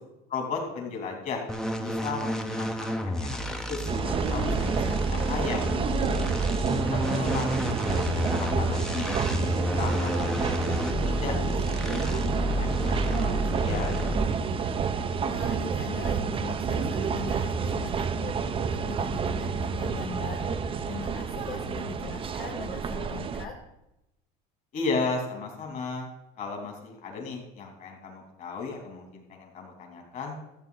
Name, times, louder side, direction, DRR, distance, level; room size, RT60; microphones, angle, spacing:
voice 1, 0.3-1.4 1.8-5.6 6.0-8.0 8.4-9.2 9.5-14.5 24.7-26.1 26.4-30.3, left 4 dB, 45° left, 1 dB, 3.2 m, -36 dB
sound 1, 1.5-14.5, left 1 dB, 5° left, 0.9 m, -30 dB
sound 2, 3.9-23.5, right 6 dB, 30° right, 0.7 m, -29 dB
Musical instrument, 10.4-16.0, right 3 dB, 60° right, 1.0 m, -46 dB
voice 2, 15.2-23.5, left 6 dB, 65° left, -1 dB, 1.4 m, -41 dB
14.0 x 7.7 x 4.0 m, 0.90 s
cardioid pair, 120°, 18 cm